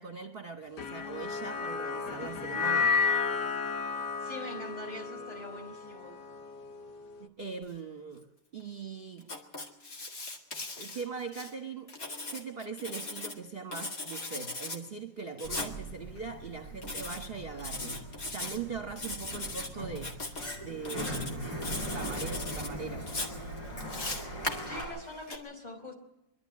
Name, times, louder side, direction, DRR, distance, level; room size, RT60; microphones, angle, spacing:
voice 1, 0.0-3.0 7.2-9.3 10.8-12.0 12.3-20.2 20.6-21.6 21.9-23.1, right 5 dB, 35° right, 5 dB, 1.3 m, -41 dB
sound 1, 0.8-7.2, left 5 dB, 65° left, 1.8 m, -32 dB
voice 2, 4.2-6.2 24.6-25.9, left 1 dB, 20° left, 4 dB, 4.3 m, -43 dB
Writing, 9.2-11.5 11.9-13.4 13.7-14.8 15.4-15.7 16.8-17.3 17.6-18.6 19.0-19.7 20.0-20.6 20.8-21.3 21.6-22.7 23.1-25.4, left 2 dB, 50° left, 2.6 m, -38 dB
Sliding door, 15.4-24.8, right 1 dB, 80° left, 5.8 m, -40 dB
24.0 x 12.0 x 9.5 m, 0.92 s
omnidirectional pair, 2.0 m